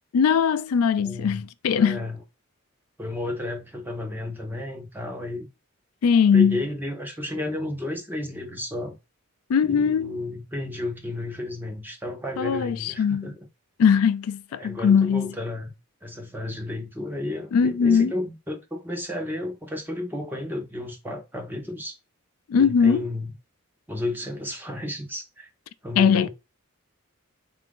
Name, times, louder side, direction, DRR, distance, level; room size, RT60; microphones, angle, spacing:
voice 1, 0.1-2.0 6.0-6.6 9.5-10.2 12.4-13.3 13.8-15.3 17.5-18.1 22.5-23.0 26.0-26.3, left 6 dB, 85° left, 0.4 m, -20 dB
voice 2, 1.0-2.2 3.0-5.5 6.3-9.0 9.6-13.4 14.6-15.7 16.0-22.0 22.6-23.3 23.9-25.5 25.8-26.3, left 2 dB, 10° right, 0.8 m, -32 dB
3.9 x 2.5 x 3.6 m
head